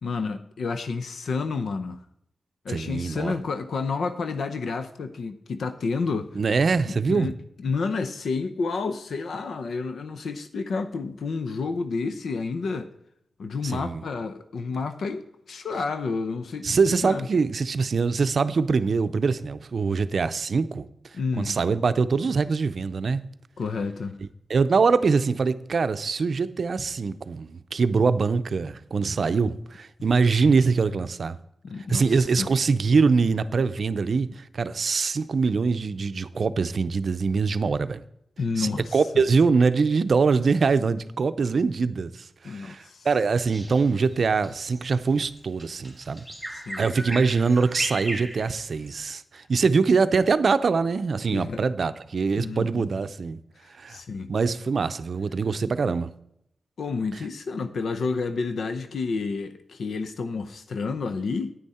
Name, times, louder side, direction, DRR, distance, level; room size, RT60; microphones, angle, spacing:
voice 1, 0.0-2.0 2.6-6.3 6.9-7.3 7.6-12.9 13.4-16.8 17.0-17.3 21.1-21.6 23.6-24.2 31.6-32.5 38.4-39.0 42.4-43.1 46.5-46.8 51.3-51.6 52.4-52.8 53.9-54.3 56.8-61.5, left 4 dB, 85° left, 0.7 m, -30 dB
voice 2, 2.7-3.3 6.3-7.3 13.6-14.0 16.6-20.9 21.4-23.3 24.5-31.4 31.9-38.0 38.6-46.2 46.8-53.4 53.8-54.0 54.3-56.1, right 4 dB, 60° right, 0.6 m, -23 dB
Bird vocalization bird call bird song, 43.5-49.0, right 1 dB, ahead, 3.1 m, -36 dB
10.0 x 9.4 x 4.3 m
wide cardioid pair, 135°, 0 cm